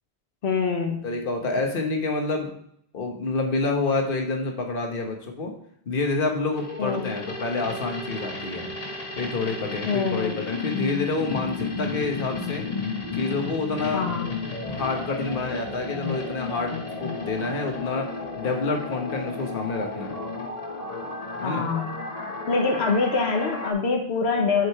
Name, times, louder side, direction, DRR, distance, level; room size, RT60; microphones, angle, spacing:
voice 1, 0.4-1.1 6.8-7.1 9.9-10.4 13.9-14.4 21.4-22.0 22.5-24.7, left 4 dB, 85° left, 2 dB, 1.3 m, -25 dB
voice 2, 1.0-2.5 2.9-5.5 5.9-8.7 9.2-12.7 13.1-14.0 14.7-18.1 18.4-20.1 21.4-21.7, left 3 dB, 60° left, 2 dB, 1.4 m, -28 dB
sound 1, 6.5-23.7, left 3 dB, 35° left, 1.4 m, -33 dB
7.9 x 5.1 x 4.7 m, 0.69 s
omnidirectional pair, 1.0 m